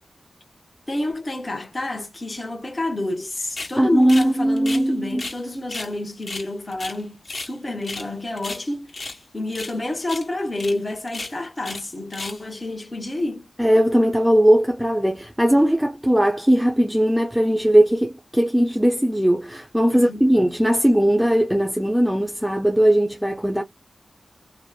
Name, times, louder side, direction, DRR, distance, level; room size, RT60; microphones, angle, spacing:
voice 1, 0.9-13.5 19.9-20.3, left 2 dB, 35° left, 0.8 m, -29 dB
sound 1, 3.6-3.8 4.1-4.3 4.6-5.4 5.7-5.9 6.2-7.5 7.8-8.1 8.4-9.2 9.5-9.8 10.0-10.3 10.5-10.7 11.1-11.8 12.1-12.4, left 2 dB, 55° left, 1.4 m, -34 dB
voice 2, 3.8-5.2 13.6-23.6, equal, 5° right, 0.5 m, -19 dB
2.9 x 2.0 x 2.2 m
wide cardioid pair, 80°, 0 cm